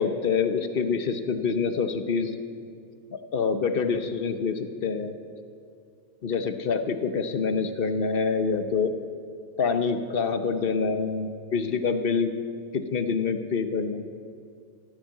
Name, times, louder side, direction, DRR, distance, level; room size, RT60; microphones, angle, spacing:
voice 1, 0.0-2.4 3.1-5.2 6.2-8.9 9.6-12.3 12.7-14.0, left 5 dB, 50° left, 8 dB, 1.0 m, -26 dB
14.5 x 13.0 x 7.6 m, 2.3 s
omnidirectional pair, 1.4 m